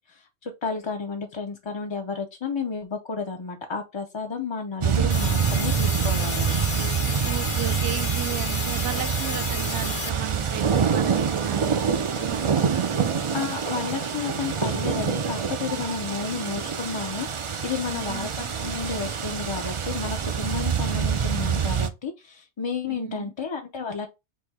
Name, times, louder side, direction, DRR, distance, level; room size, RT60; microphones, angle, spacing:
voice 1, 0.1-6.5 12.1-12.2 13.3-18.3 18.6-24.1, left 5 dB, 35° left, 0.4 m, -32 dB
sound 1, 4.8-21.9, right 7 dB, 50° right, 0.4 m, -26 dB
sound 2, 5.1-10.1, left 9 dB, 70° left, 0.8 m, -33 dB
voice 2, 7.2-13.2 17.9-18.5 22.9-23.3, right 11 dB, 70° right, 0.8 m, -35 dB
4.2 x 2.7 x 4.7 m
omnidirectional pair, 1.2 m